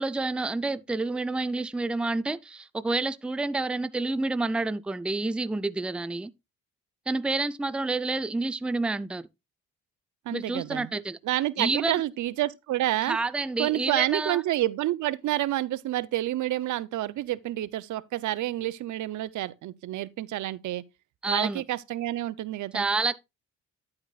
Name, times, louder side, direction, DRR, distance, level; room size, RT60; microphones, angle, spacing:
voice 1, 0.0-6.3 7.1-9.3 10.3-11.2 11.6-12.0 13.0-14.4 21.2-21.6 22.7-23.2, right 3 dB, 5° right, 0.5 m, -29 dB
voice 2, 10.3-10.9 11.2-13.2 13.6-20.8 21.3-22.9, right 14 dB, 75° right, 0.7 m, -29 dB
10.0 x 8.7 x 2.4 m
cardioid pair, 90°, 30 cm